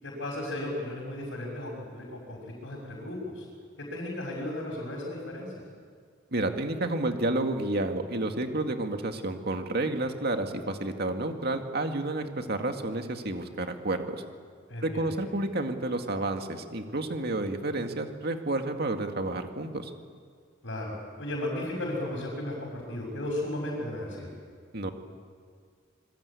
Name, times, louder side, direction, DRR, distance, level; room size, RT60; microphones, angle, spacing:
voice 1, 0.0-3.5 3.8-5.6 14.7-15.1 20.6-24.3, left 1 dB, 65° left, -2 dB, 5.9 m, -35 dB
voice 2, 6.3-14.2 14.8-19.9 24.7-24.9, right 2 dB, 55° right, 5 dB, 2.2 m, -30 dB
26.5 x 22.0 x 8.5 m, 2.1 s
head